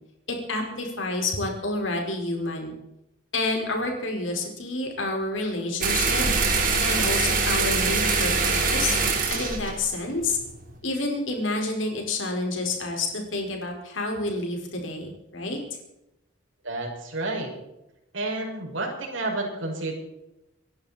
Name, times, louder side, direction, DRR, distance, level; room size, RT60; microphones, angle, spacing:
voice 1, 0.3-2.7 3.3-6.2 6.8-9.0 9.3-10.4 10.8-15.6, left 2 dB, 85° left, 2 dB, 4.8 m, -29 dB
sound 1, 5.8-10.7, right 4 dB, 45° right, 4.0 m, -24 dB
voice 2, 16.6-17.5 18.1-19.9, right 2 dB, 80° right, -1 dB, 6.1 m, -30 dB
26.0 x 11.5 x 4.3 m, 0.89 s
head